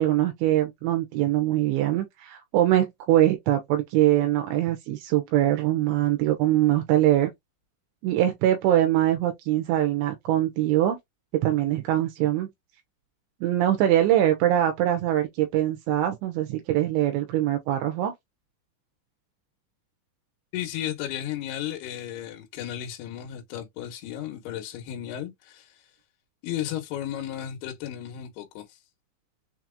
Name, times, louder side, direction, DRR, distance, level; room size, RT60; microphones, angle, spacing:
voice 1, 0.0-7.3 8.0-11.0 11.4-12.5 13.4-18.1, right 13 dB, 85° right, 3.1 m, -23 dB
voice 2, 20.5-25.6 26.4-28.7, left 11 dB, 75° left, 2.9 m, -34 dB
6.8 x 2.9 x 2.4 m
omnidirectional pair, 5.3 m